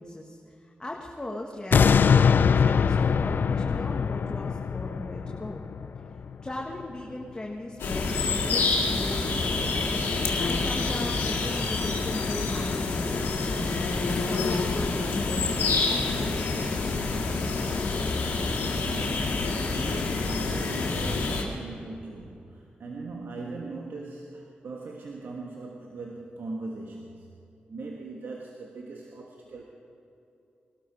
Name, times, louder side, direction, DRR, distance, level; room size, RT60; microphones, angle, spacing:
voice 1, 0.0-5.6 6.4-9.8 10.4-13.9 14.2-16.8, left 1 dB, 25° left, -1 dB, 1.7 m, -38 dB
sound 1, 1.7-6.8 7.3-7.4, left 6 dB, 65° left, 0.4 m, -23 dB
the sound of deep forest - rear, 7.8-21.4, left 3 dB, 85° left, 1.9 m, -27 dB
voice 2, 18.8-27.3 27.7-29.6, right 3 dB, 75° right, 0 dB, 1.4 m, -40 dB
20.0 x 12.5 x 4.8 m, 2.8 s
supercardioid pair, 45°, 4 cm